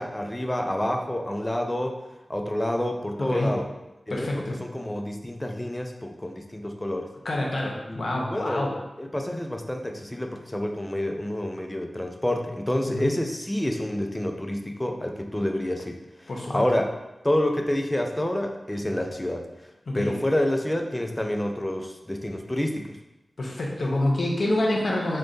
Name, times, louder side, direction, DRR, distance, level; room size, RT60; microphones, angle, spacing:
voice 1, 0.0-2.0 2.3-3.7 4.1-7.1 7.9-8.7 9.0-16.0 16.5-16.9 17.2-19.5 19.9-23.0, left 1 dB, 15° left, 4 dB, 0.4 m, -28 dB
voice 2, 3.2-3.5 4.1-4.6 7.2-8.7 12.9-13.1 16.3-16.6 19.9-20.2 23.4-25.2, left 1 dB, 70° left, -1 dB, 0.7 m, -27 dB
3.8 x 2.2 x 3.8 m, 0.99 s
wide cardioid pair, 80°, 0 cm